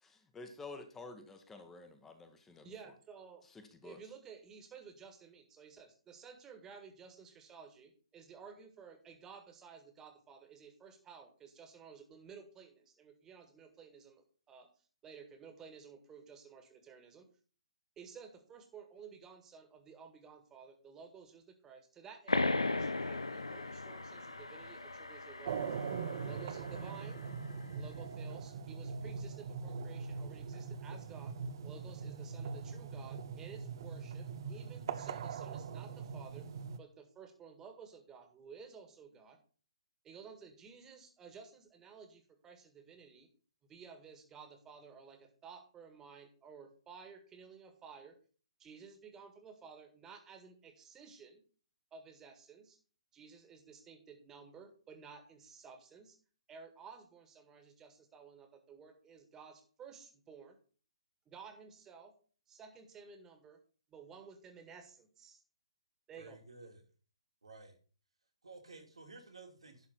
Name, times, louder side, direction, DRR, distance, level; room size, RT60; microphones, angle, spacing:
voice 1, 0.0-2.7 3.5-4.0, left 3 dB, 10° left, 7 dB, 1.3 m, -50 dB
voice 2, 2.6-3.4 3.8-14.7 15.0-17.3 18.0-25.6 26.2-27.2 27.7-31.4 31.6-36.5 36.8-39.4 40.0-43.3 43.6-48.2 48.6-51.4 51.9-52.8 53.1-56.2 56.5-60.6 61.3-62.1 62.5-63.6 63.9-65.4 66.1-66.4, right 6 dB, 15° right, 5 dB, 1.8 m, -54 dB
sound 1, 22.3-27.5, left 2 dB, 80° left, 1.1 m, -37 dB
sound 2, 25.4-36.8, right 5 dB, 45° right, 0.7 m, -41 dB
voice 3, 66.2-66.8 67.4-67.8 68.4-69.9, right 3 dB, 75° right, 3 dB, 2.8 m, -53 dB
11.5 x 4.3 x 5.8 m, 0.40 s
figure-of-eight pair, 130°, 3 cm